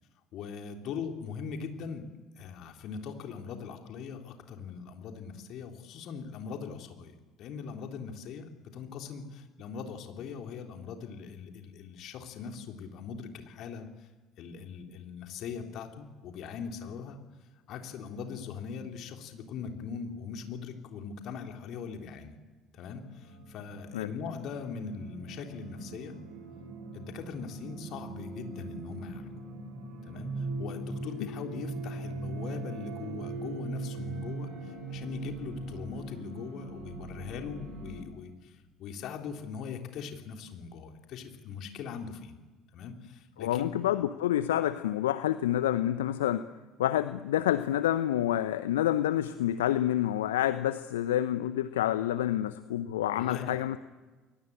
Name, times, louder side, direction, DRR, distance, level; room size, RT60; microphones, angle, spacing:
voice 1, 0.3-2.1 2.4-14.1 14.4-17.2 17.7-22.4 22.7-26.2 26.9-29.3 30.1-42.4 42.7-43.7 53.1-53.6, left 6 dB, 55° left, 4 dB, 3.5 m, -41 dB
sound 1, 22.9-38.0, right 3 dB, 60° right, 7.7 m, -40 dB
voice 2, 43.4-46.4 46.8-53.8, left 12 dB, 75° left, 13 dB, 0.8 m, -28 dB
30.0 x 22.5 x 8.9 m, 1.3 s
figure-of-eight pair, 55°, 0 cm